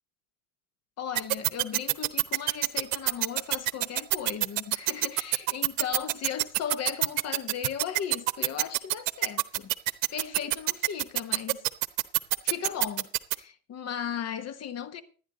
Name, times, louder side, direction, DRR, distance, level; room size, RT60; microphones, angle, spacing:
voice 1, 1.0-9.7 10.1-11.7 12.4-13.1 13.3-15.0, left 8 dB, 40° left, 1.2 m, -36 dB
sound 1, 1.1-13.3, right 22 dB, 70° right, 0.9 m, -25 dB
14.5 x 10.0 x 3.9 m
supercardioid pair, 95°, 41 cm